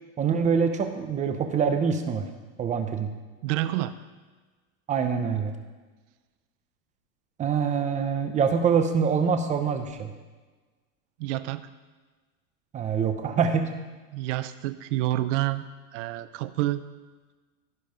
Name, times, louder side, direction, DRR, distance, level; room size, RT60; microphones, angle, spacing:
voice 1, 0.2-2.3 2.6-3.1 4.9-5.5 7.4-10.1 12.7-13.7, right 6 dB, 20° right, 7 dB, 0.7 m, -25 dB
voice 2, 3.4-3.9 11.2-11.7 14.1-15.6 15.9-16.8, right 15 dB, 60° right, 12 dB, 0.7 m, -28 dB
15.5 x 5.2 x 5.2 m, 1.3 s
supercardioid pair, 150°, 41 cm